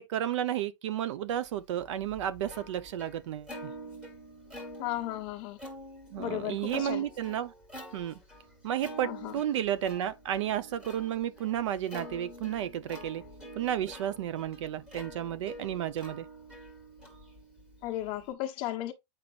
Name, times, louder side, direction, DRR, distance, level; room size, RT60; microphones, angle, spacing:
voice 1, 0.0-3.7 6.1-7.5 7.9-8.2 8.6-13.2 13.6-16.3, right 11 dB, 70° right, 0.8 m, -32 dB
Plucked string instrument, 1.6-18.3, equal, 5° right, 1.6 m, -47 dB
voice 2, 4.8-5.6 6.2-7.0 9.0-9.3 17.8-18.9, left 14 dB, 30° left, 1.1 m, -35 dB
8.8 x 5.6 x 2.5 m
supercardioid pair, 180°, 16 cm